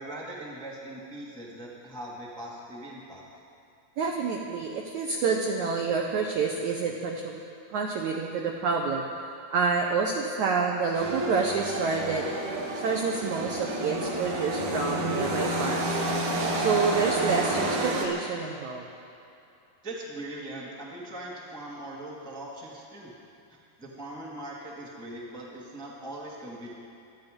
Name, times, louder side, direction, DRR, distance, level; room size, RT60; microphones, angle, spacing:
voice 1, 0.0-3.2 19.8-23.1 23.5-26.7, right 1 dB, 5° left, -4 dB, 0.7 m, -40 dB
voice 2, 4.0-7.4 7.7-9.1 9.5-12.2 12.8-16.0 16.5-18.8, right 5 dB, 75° right, 1 dB, 1.7 m, -28 dB
sound 1, 10.9-18.1, right 1 dB, 55° right, 3.0 m, -29 dB
26.0 x 9.5 x 5.3 m, 2.6 s
omnidirectional pair, 4.5 m